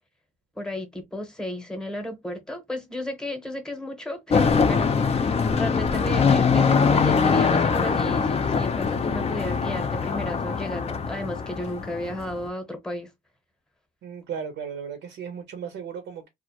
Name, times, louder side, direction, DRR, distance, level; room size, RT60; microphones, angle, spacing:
voice 1, 0.6-13.1, left 1 dB, 5° left, 0.8 m, -33 dB
sound 1, 4.3-12.3, left 5 dB, 30° left, 0.4 m, -23 dB
voice 2, 14.0-16.3, right 7 dB, 75° right, 0.6 m, -35 dB
2.4 x 2.1 x 2.7 m
cardioid pair, 90°, 20 cm